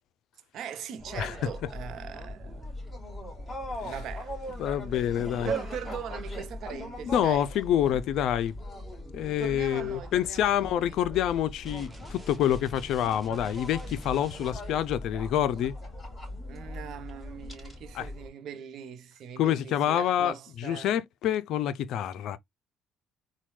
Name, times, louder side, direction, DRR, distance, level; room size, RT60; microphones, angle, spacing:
voice 1, 0.5-2.9 3.6-7.5 9.4-11.1 16.5-20.9, right 8 dB, 65° right, 0.7 m, -41 dB
sound 1, 1.0-18.3, equal, 25° left, 2.9 m, -40 dB
voice 2, 4.6-5.5 6.7-8.6 9.1-15.7 17.9-18.1 19.4-22.4, left 10 dB, 70° left, 0.4 m, -27 dB
sound 2, 11.6-14.9, right 1 dB, 15° right, 0.8 m, -49 dB
4.1 x 2.2 x 3.1 m
cardioid pair, 90°, 0 cm